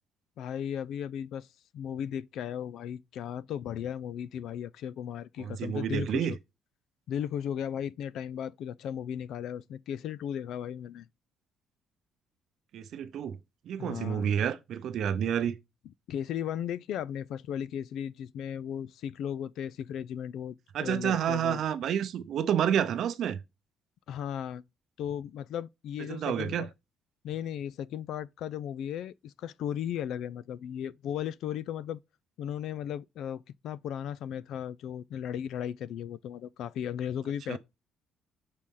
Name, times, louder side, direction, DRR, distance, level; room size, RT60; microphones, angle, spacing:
voice 1, 0.4-1.5 1.7-6.3 7.1-11.1 13.8-14.3 16.1-20.5 20.8-21.6 24.1-24.6 25.0-26.7 27.2-32.0 32.4-37.6, left 9 dB, 60° left, 0.3 m, -36 dB
voice 2, 5.4-6.3 12.7-13.4 13.7-15.5 20.7-23.4 26.1-26.7 37.5-37.6, right 9 dB, 50° right, 0.7 m, -29 dB
6.2 x 4.2 x 3.7 m
cardioid pair, 175°, 0 cm